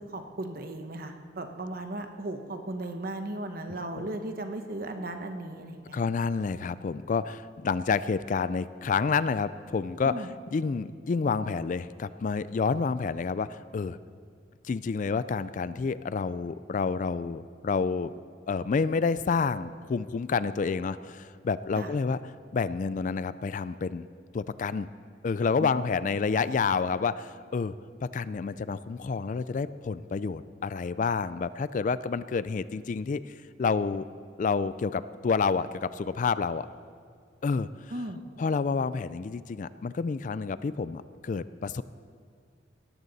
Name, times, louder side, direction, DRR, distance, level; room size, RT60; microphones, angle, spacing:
voice 1, 0.1-6.0 10.0-10.3 21.7-21.9 25.6-25.7 37.9-38.2, right 1 dB, 50° right, 6 dB, 1.1 m, -36 dB
voice 2, 5.9-10.1 10.5-14.0 14.7-18.1 18.5-22.2 22.5-24.1 24.3-24.9 25.2-27.7 28.0-34.1 34.4-36.7 37.4-37.7 38.4-41.8, left 5 dB, 45° left, 16 dB, 0.3 m, -29 dB
17.5 x 14.0 x 4.1 m, 2.1 s
head